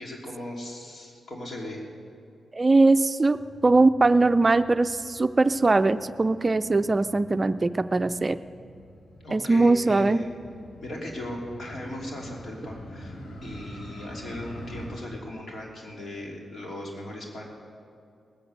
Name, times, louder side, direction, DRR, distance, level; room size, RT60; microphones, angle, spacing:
voice 1, 0.0-1.8 9.2-10.3 10.8-13.1 13.4-17.4, left 1 dB, 60° left, -1 dB, 3.1 m, -38 dB
voice 2, 2.5-3.4 3.6-8.4 9.3-10.2, right 3 dB, 35° right, 12 dB, 0.4 m, -21 dB
Motorcycle, 3.3-14.9, equal, 85° left, 4.5 m, -45 dB
19.0 x 8.4 x 6.6 m, 2.4 s
supercardioid pair, 45°, 0 cm